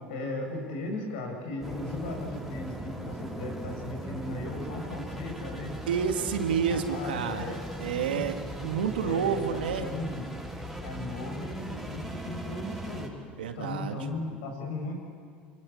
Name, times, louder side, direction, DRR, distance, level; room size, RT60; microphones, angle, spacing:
voice 1, 0.1-5.7 6.7-7.7 8.0-8.2 9.0-10.3 10.8-13.1 13.6-15.0, left 2 dB, 75° left, 2 dB, 7.4 m, -37 dB
sound 1, 1.6-13.1, right 1 dB, ahead, 6.3 m, -39 dB
voice 2, 5.9-9.9 13.4-14.0, right 7 dB, 85° right, 6 dB, 2.0 m, -29 dB
27.5 x 23.5 x 8.7 m, 2.1 s
hypercardioid pair, 75°, 5 cm